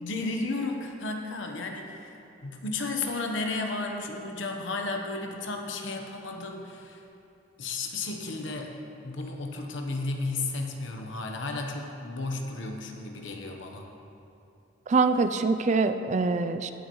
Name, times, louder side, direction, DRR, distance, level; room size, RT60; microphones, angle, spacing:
voice 1, 0.0-7.0 7.6-8.8 9.0-13.9, left 3 dB, 75° left, 3 dB, 1.1 m, -33 dB
voice 2, 14.9-16.7, right 4 dB, 40° right, 10 dB, 0.4 m, -24 dB
16.5 x 8.2 x 3.1 m, 2.7 s
head